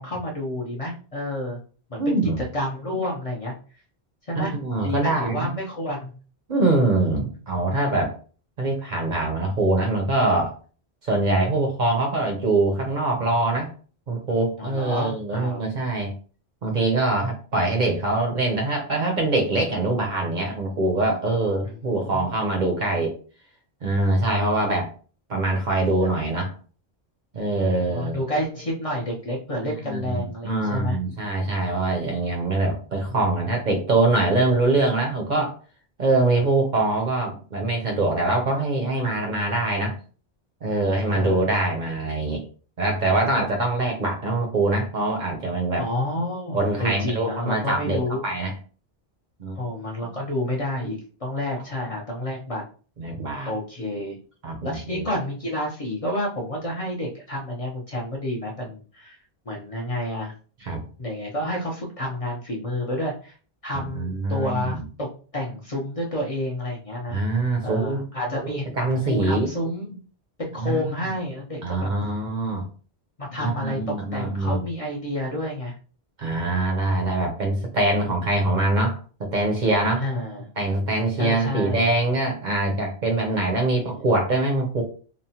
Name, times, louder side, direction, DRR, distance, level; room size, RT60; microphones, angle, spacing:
voice 1, 0.0-1.6 1.9-2.2 2.5-3.5 4.2-4.5 4.8-6.1 14.6-15.6 21.6-22.4 27.5-31.0 39.6-39.7 41.1-41.6 45.8-48.2 49.5-52.6 53.5-54.2 54.6-59.2 59.5-60.3 61.0-63.3 63.6-67.2 67.6-68.7 69.0-70.0 70.4-71.9 73.2-75.8 76.3-76.6 80.0-80.5 81.2-81.8 83.7-84.1, left 1 dB, 45° left, -3 dB, 0.5 m, -30 dB
voice 2, 2.0-2.4 4.4-5.5 6.5-8.1 8.6-10.6 11.0-13.7 14.1-16.1 16.6-23.1 23.8-24.9 25.3-26.5 27.3-28.2 29.8-35.5 36.0-39.9 40.6-42.4 42.8-45.9 46.5-48.5 49.4-49.6 53.0-53.5 54.4-55.0 60.6-60.8 63.7-64.8 67.1-68.0 68.4-69.5 70.6-70.9 71.6-72.7 73.4-74.6 76.2-80.0 80.6-84.8, right 2 dB, 55° right, 2 dB, 0.6 m, -23 dB
2.9 x 2.0 x 2.7 m, 0.40 s
omnidirectional pair, 1.1 m